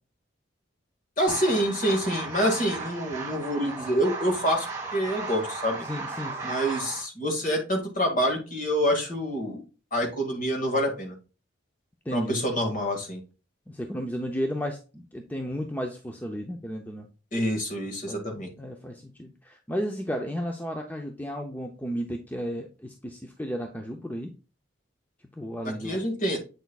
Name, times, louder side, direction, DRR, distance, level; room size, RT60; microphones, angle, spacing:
voice 1, 1.2-4.7 4.9-5.9 6.4-9.6 9.9-11.1 12.1-13.2 17.3-18.5 25.8-26.4, equal, 40° left, 2 dB, 2.0 m, -26 dB
sound 1, 1.3-7.0, right 3 dB, 15° right, 2.2 m, -35 dB
voice 2, 5.8-6.6 12.1-12.4 13.7-17.1 18.1-24.3 25.4-26.0, equal, 10° left, 3 dB, 0.5 m, -33 dB
8.0 x 6.2 x 2.3 m, 0.33 s
head